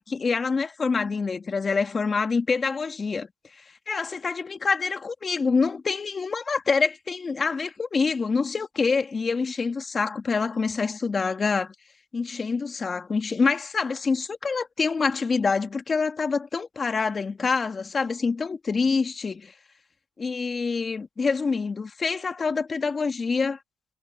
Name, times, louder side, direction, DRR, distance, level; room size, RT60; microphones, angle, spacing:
voice 1, 0.0-3.3 3.9-11.7 12.1-19.5 20.2-23.6, left 4 dB, 35° left, 2.2 m, -26 dB
cardioid pair, 90°, 0 cm